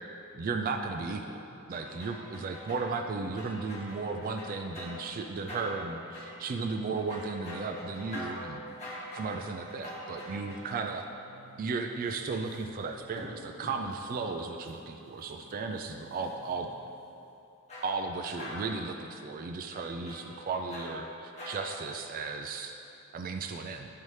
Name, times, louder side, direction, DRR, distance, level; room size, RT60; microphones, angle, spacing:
voice 1, 0.3-8.6 9.2-11.1 11.6-16.7 17.8-22.8 23.1-23.9, right 4 dB, 40° right, 4 dB, 0.3 m, -35 dB
sound 1, 1.4-16.9, left 1 dB, 70° left, 1.1 m, -58 dB
sound 2, 1.7-11.2 12.1-14.0 14.6-14.7 15.2-15.5 16.1-16.3 17.7-21.6, equal, 30° left, 1.4 m, -45 dB
10.5 x 5.4 x 3.2 m, 2.9 s
head